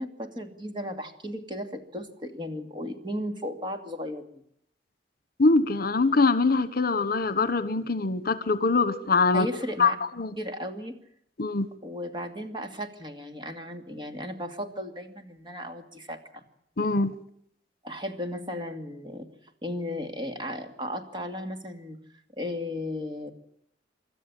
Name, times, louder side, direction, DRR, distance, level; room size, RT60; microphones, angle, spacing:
voice 1, 0.0-4.3 9.3-10.0 10.4-10.9 11.8-16.4 17.8-19.3 19.6-22.0 22.4-23.3, left 1 dB, 25° right, 5 dB, 2.5 m, -35 dB
voice 2, 5.4-9.5 9.8-9.9 10.2-10.3 11.4-11.7 16.8-17.1, left 3 dB, 55° left, 13 dB, 1.2 m, -23 dB
26.0 x 13.0 x 9.9 m, 0.70 s
head